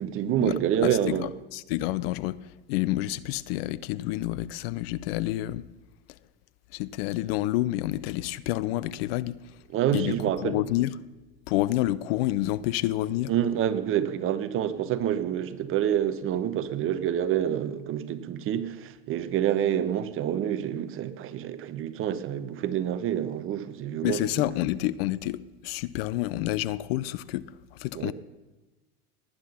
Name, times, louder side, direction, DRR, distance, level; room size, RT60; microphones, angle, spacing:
voice 1, 0.0-1.3 9.7-10.6 13.3-24.2 27.9-28.1, right 10 dB, 40° right, 1.2 m, -27 dB
voice 2, 0.8-2.4 2.7-5.6 6.7-9.4 9.9-10.2 10.4-11.1 11.5-13.3 24.0-27.5 27.8-28.1, left 15 dB, 70° left, 0.7 m, -28 dB
18.5 x 9.9 x 5.6 m
supercardioid pair, 110°, 31 cm